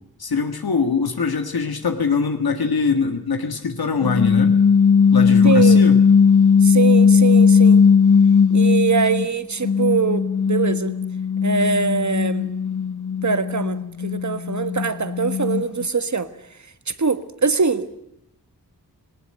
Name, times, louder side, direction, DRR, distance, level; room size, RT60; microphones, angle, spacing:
voice 1, 0.2-4.5 5.1-6.0, left 5 dB, 70° left, 1.9 m, -22 dB
sound 1, 4.0-9.3 9.6-15.9, left 6 dB, 50° left, 0.8 m, -17 dB
voice 2, 5.4-5.8 6.6-7.8 8.5-10.9 11.4-12.5 13.2-16.3 16.9-18.0, right 5 dB, 50° right, 1.5 m, -22 dB
19.0 x 18.5 x 9.0 m
cardioid pair, 50°, 38 cm